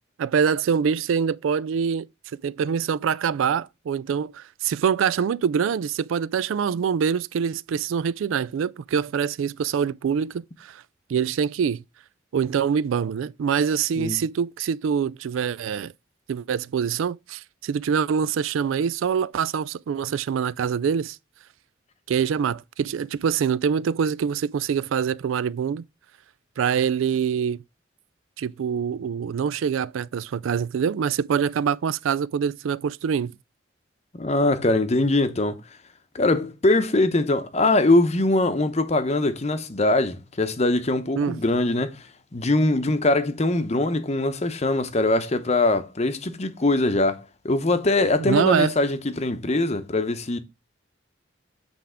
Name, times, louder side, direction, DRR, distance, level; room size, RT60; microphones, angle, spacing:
voice 1, 0.2-2.1 2.4-10.8 11.1-11.8 12.3-15.9 16.3-21.2 22.1-25.8 26.6-27.6 28.4-33.3 41.2-41.4 48.2-48.7, right 7 dB, 85° right, 0.3 m, -25 dB
voice 2, 34.1-35.6 36.1-50.4, left 2 dB, 35° left, 0.7 m, -22 dB
7.9 x 3.5 x 4.9 m
head